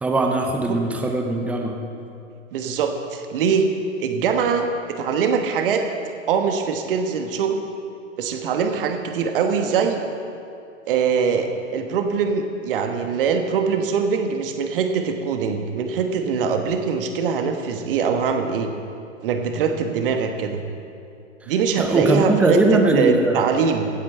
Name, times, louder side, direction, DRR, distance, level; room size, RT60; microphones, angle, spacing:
voice 1, 0.0-1.8 21.4-21.5 21.8-23.4, right 2 dB, 5° right, 3 dB, 0.5 m, -20 dB
voice 2, 2.5-3.6 4.0-5.8 6.3-7.6 8.2-10.0 10.9-18.7 19.2-20.6 21.5-23.9, right 6 dB, 45° right, 6 dB, 1.3 m, -22 dB
16.0 x 8.9 x 4.5 m, 2.6 s
figure-of-eight pair, 115°, 38 cm